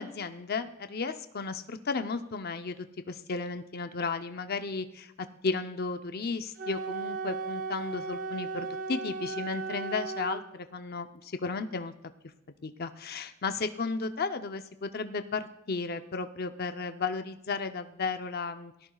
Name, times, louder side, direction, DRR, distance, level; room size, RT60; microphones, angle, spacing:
voice 1, 0.0-5.1 5.4-11.9 12.6-18.7, left 4 dB, 45° left, 8 dB, 0.6 m, -34 dB
Wind instrument woodwind instrument, 6.6-10.4, right 4 dB, 40° right, 1.0 m, -36 dB
18.5 x 16.0 x 2.4 m, 0.83 s
head